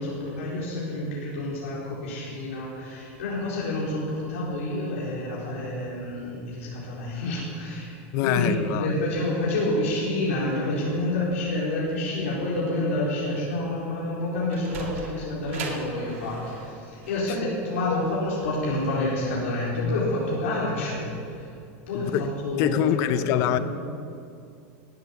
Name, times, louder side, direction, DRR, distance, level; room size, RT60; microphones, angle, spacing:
voice 1, 0.0-21.5 21.9-23.6, left 1 dB, 85° left, -6 dB, 4.2 m, -28 dB
voice 2, 8.1-9.0 17.3-17.4 21.9-22.3 22.6-23.6, left 12 dB, 45° left, 13 dB, 0.7 m, -25 dB
Sliding door, 14.5-19.4, right 4 dB, 85° right, 2.7 m, -40 dB
18.5 x 8.5 x 7.1 m, 2.5 s
supercardioid pair, 145°, 7 cm